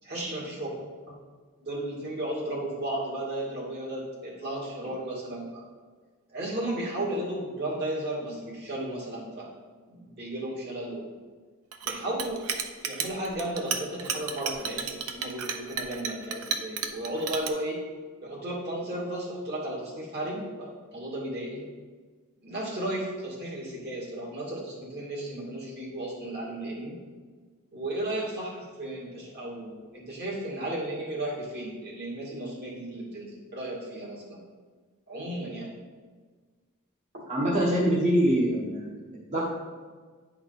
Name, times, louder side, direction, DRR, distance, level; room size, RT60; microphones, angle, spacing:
voice 1, 0.0-1.1 1.6-5.6 6.3-9.5 9.9-11.1 11.8-12.4 12.8-17.8 18.2-21.7 22.4-27.0 27.7-34.4 35.1-35.7 37.1-37.3, right 1 dB, 50° right, -4 dB, 2.3 m, -34 dB
Chink clink, 11.7-17.5, right 7 dB, 75° right, 0.6 m, -32 dB
voice 2, 37.3-38.8 39.3-39.4, right 1 dB, 35° right, -7 dB, 1.1 m, -24 dB
9.8 x 4.6 x 4.0 m, 1.5 s
head